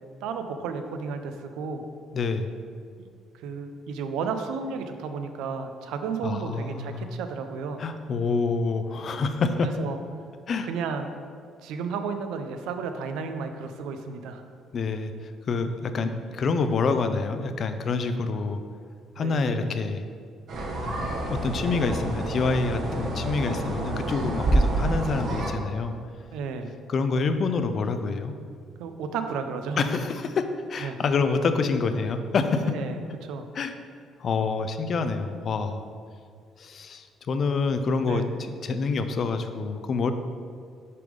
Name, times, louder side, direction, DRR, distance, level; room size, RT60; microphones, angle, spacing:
voice 1, 0.2-1.8 3.0-3.1 3.4-7.8 9.6-10.0 10.6-11.1 11.6-14.4 19.2-19.4 26.3-26.7 28.8-29.8 30.8-31.0 32.6-33.5 38.0-38.3, right 5 dB, 85° right, 7 dB, 0.5 m, -33 dB
voice 2, 2.1-2.5 6.2-7.0 7.8-9.7 10.5-10.7 14.7-18.6 19.2-20.0 20.8-20.9 21.3-25.9 26.9-28.3 29.8-32.7 33.5-33.7 34.2-35.8 36.6-40.1, left 4 dB, 50° left, 8 dB, 0.4 m, -27 dB
sound 1, 20.5-25.5, right 1 dB, 60° right, 1.2 m, -27 dB
6.6 x 3.5 x 5.1 m, 2.2 s
cardioid pair, 100°, 0 cm